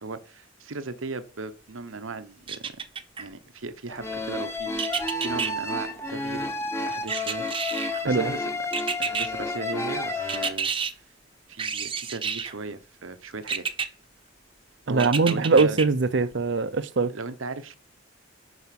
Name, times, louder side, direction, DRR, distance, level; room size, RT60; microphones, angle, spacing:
voice 1, 0.0-2.7 3.2-7.4 8.0-8.7 9.0-10.7 11.5-13.7 14.9-15.8 17.1-17.7, right 3 dB, 90° right, 1.0 m, -37 dB
sound 1, 2.5-3.2 4.8-5.5 7.1-8.0 8.7-9.3 10.3-10.9 11.6-12.5 13.5-13.9 15.0-15.8 16.3-16.4, right 6 dB, 25° right, 0.8 m, -29 dB
sound 2, 3.9-10.5, left 2 dB, 15° left, 1.1 m, -31 dB
voice 2, 14.9-17.1, right 4 dB, 60° right, 0.6 m, -22 dB
9.4 x 5.8 x 5.9 m
head